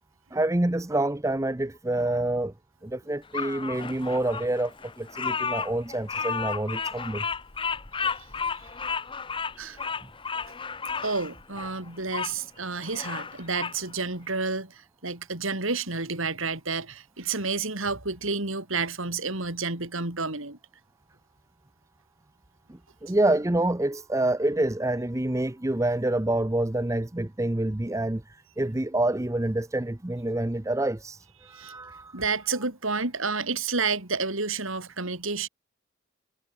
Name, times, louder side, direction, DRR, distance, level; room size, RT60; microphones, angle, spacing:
voice 1, 0.3-2.5 2.8-7.2 23.0-28.2 28.6-31.2 31.5-32.1, right 1 dB, 15° right, 0.6 m, -27 dB
Bird vocalization bird call bird song, 3.3-12.3 12.8-13.8, left 5 dB, 25° left, 0.9 m, -33 dB
voice 2, 11.0-20.6 31.4-31.7 32.1-35.5, right 4 dB, 70° right, 3.9 m, -30 dB
head